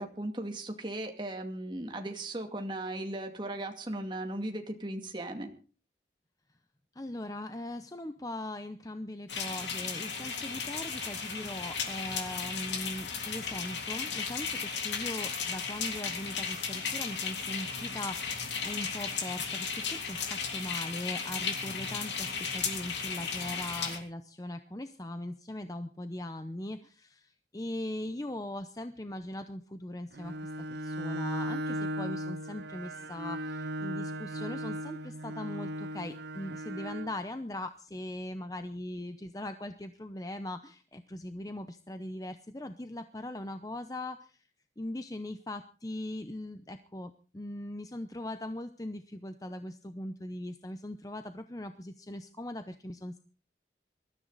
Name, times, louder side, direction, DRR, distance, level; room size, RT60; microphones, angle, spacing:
voice 1, 0.0-5.5, right 1 dB, 25° right, 4 dB, 2.4 m, -37 dB
voice 2, 6.9-44.5 44.8-53.2, left 1 dB, 20° left, 9 dB, 0.7 m, -40 dB
sound 1, 9.3-24.0, left 5 dB, 85° left, 3.4 m, -35 dB
Bowed string instrument, 30.1-37.2, right 1 dB, 70° right, 0.6 m, -37 dB
22.0 x 13.5 x 4.1 m, 0.38 s
head